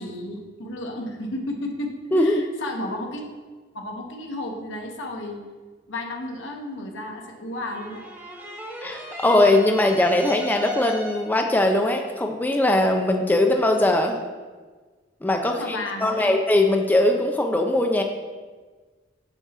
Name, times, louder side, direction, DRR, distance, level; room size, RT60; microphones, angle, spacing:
voice 1, 0.0-3.3 3.7-5.4 5.9-8.0 15.4-16.3, left 1 dB, 80° left, 2 dB, 1.0 m, -33 dB
voice 2, 2.1-2.4 8.8-14.2 15.2-18.0, left 1 dB, 10° left, 3 dB, 0.4 m, -20 dB
sound 1, 7.6-11.5, equal, 10° right, 0.7 m, -37 dB
8.0 x 2.9 x 5.9 m, 1.4 s
head